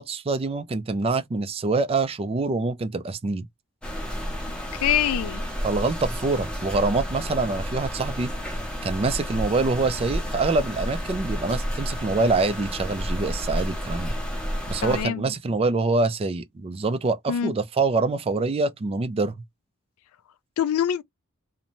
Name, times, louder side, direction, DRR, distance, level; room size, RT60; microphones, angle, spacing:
voice 1, 0.0-3.5 5.6-8.3 8.8-14.1 14.7-19.4, right 3 dB, 25° right, 0.3 m, -25 dB
sound 1, 3.8-15.0, equal, 5° left, 0.6 m, -31 dB
voice 2, 4.8-5.4 14.8-15.2 17.3-17.5 20.6-21.0, left 9 dB, 70° left, 0.3 m, -24 dB
2.6 x 2.1 x 3.0 m
head